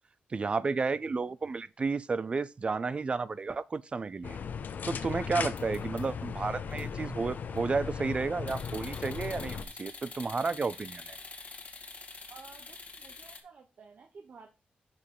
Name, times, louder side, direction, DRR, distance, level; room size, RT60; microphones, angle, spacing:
voice 1, 0.3-4.4 4.9-11.2, right 4 dB, 35° right, 0.3 m, -32 dB
sound 1, 4.2-9.6, left 6 dB, 65° left, 0.7 m, -37 dB
sound 2, 5.5-6.3 6.7-6.8 7.3-7.7 8.5-13.4, left 3 dB, 45° left, 1.8 m, -46 dB
voice 2, 12.3-14.5, right 5 dB, 60° right, 0.9 m, -52 dB
6.4 x 5.2 x 5.5 m
wide cardioid pair, 105°, 3 cm